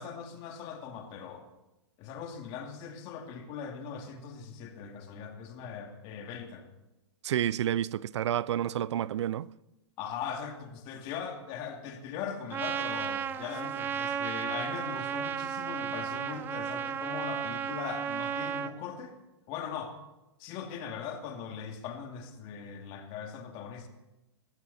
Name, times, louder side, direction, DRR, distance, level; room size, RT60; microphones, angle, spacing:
voice 1, 0.0-1.5 2.0-6.7 10.0-19.2 19.5-20.0 20.4-23.9, left 7 dB, 35° left, 2.4 m, -40 dB
voice 2, 7.2-9.5, right 11 dB, 80° right, 0.5 m, -29 dB
Trumpet, 12.5-18.7, right 8 dB, 15° right, 0.5 m, -34 dB
21.0 x 14.5 x 4.2 m
hypercardioid pair, 155°, 15 cm